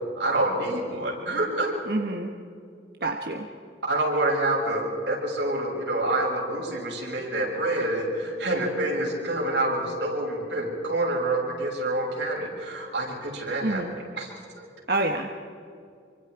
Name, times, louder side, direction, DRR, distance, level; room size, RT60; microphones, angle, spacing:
voice 1, 0.2-1.7 3.8-13.8 14.2-14.7, right 1 dB, 85° right, -2 dB, 7.0 m, -27 dB
voice 2, 1.9-2.3 3.0-3.5 13.6-13.9 14.9-15.3, right 2 dB, 55° right, 3 dB, 1.3 m, -27 dB
27.5 x 25.0 x 4.8 m, 2.3 s
head